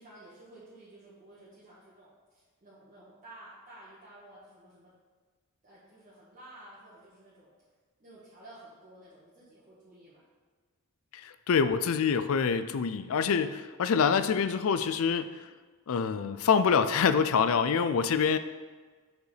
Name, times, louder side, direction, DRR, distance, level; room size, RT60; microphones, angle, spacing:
voice 1, 0.0-4.9 5.6-7.5 8.0-10.2 18.0-18.2, right 1 dB, 35° right, 1.6 m, -53 dB
voice 2, 11.1-15.3 15.9-18.4, left 6 dB, 65° left, 0.4 m, -26 dB
6.4 x 5.2 x 4.9 m
head